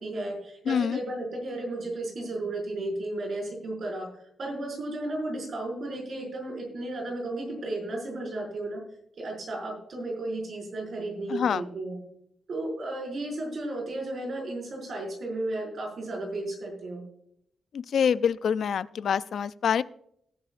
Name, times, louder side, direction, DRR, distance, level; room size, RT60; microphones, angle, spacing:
voice 1, 0.0-4.1 4.4-8.8 9.2-12.0 12.5-17.0, right 2 dB, 55° right, -1 dB, 5.5 m, -34 dB
voice 2, 0.7-1.0 11.3-11.6 17.7-19.8, left 7 dB, 70° left, 16 dB, 0.3 m, -26 dB
18.0 x 11.0 x 2.5 m, 0.72 s
wide cardioid pair, 130°, 0 cm